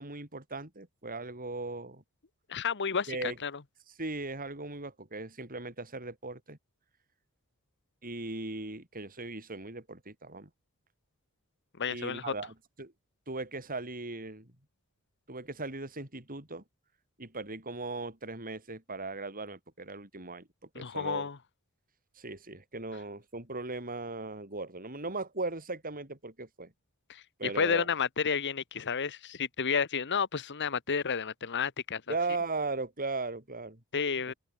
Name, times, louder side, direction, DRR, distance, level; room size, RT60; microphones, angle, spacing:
voice 1, 0.0-2.0 3.1-3.4 4.0-6.6 8.0-10.5 11.9-12.9 13.3-14.5 15.3-16.6 17.2-20.5 20.8-21.3 22.2-26.7 27.4-27.9 32.1-33.8, right 3 dB, 40° right, 7.2 m, -38 dB
voice 2, 2.5-3.2 3.4-3.5 11.8-12.2 20.7-21.4 27.1-32.1 33.9-34.3, left 6 dB, 55° left, 1.2 m, -31 dB
head